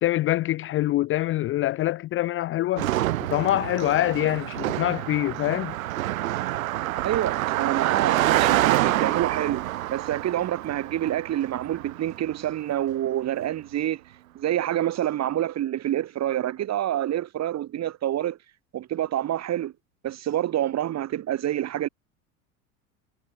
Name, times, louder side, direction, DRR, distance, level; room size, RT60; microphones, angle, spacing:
voice 1, 0.0-2.9 3.3-5.7, left 15 dB, 30° left, 0.6 m, -25 dB
Car passing by, 2.8-12.3, right 15 dB, 70° right, 0.9 m, -27 dB
voice 2, 7.0-14.0 14.3-18.4 18.7-19.7 20.0-21.9, right 12 dB, 35° right, 4.0 m, -27 dB
figure-of-eight pair, 75°, 43 cm